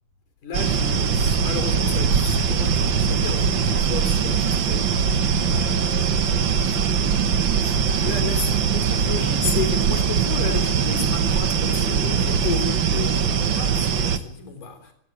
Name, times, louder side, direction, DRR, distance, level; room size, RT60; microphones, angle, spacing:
voice 1, 0.4-6.3 6.6-7.0 7.5-14.9, left 6 dB, 60° left, 5.3 m, -33 dB
sound 1, 0.5-14.2, right 6 dB, 90° right, 1.0 m, -21 dB
27.5 x 13.5 x 9.8 m
omnidirectional pair, 4.2 m